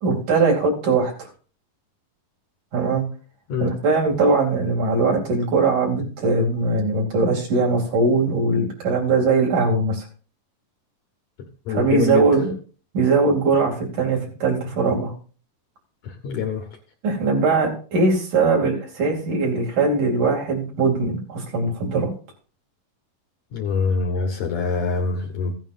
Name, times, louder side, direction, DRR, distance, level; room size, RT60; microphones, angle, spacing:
voice 1, 0.0-1.3 2.7-3.0 3.6-10.0 11.7-12.5 12.9-15.1 17.0-22.1, right 3 dB, 60° right, -1 dB, 3.9 m, -20 dB
voice 2, 11.4-12.3 16.0-16.8 23.5-25.6, left 5 dB, 65° left, 5 dB, 1.9 m, -25 dB
16.0 x 9.2 x 2.5 m, 0.38 s
omnidirectional pair, 4.0 m